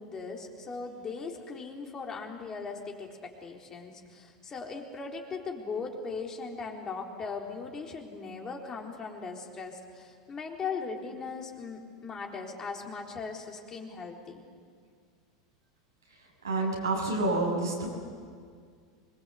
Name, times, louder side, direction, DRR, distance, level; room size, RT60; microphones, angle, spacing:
voice 1, 0.0-14.4, left 4 dB, 30° left, 1 dB, 3.9 m, -39 dB
voice 2, 16.4-17.9, right 2 dB, 90° right, -2 dB, 6.5 m, -28 dB
25.5 x 22.0 x 8.3 m, 2.1 s
hypercardioid pair, 85°, 2 cm